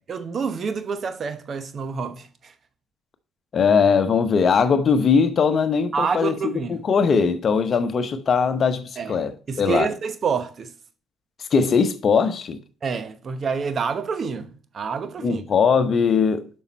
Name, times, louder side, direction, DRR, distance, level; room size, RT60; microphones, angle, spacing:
voice 1, 0.1-2.5 5.9-6.8 9.0-9.2 9.5-10.7 12.8-15.4, right 5 dB, 50° right, 1.0 m, -28 dB
voice 2, 3.5-9.9 11.5-12.6 15.2-16.5, left 5 dB, 50° left, 0.9 m, -20 dB
7.0 x 5.5 x 4.1 m
hypercardioid pair, 55°, 0 cm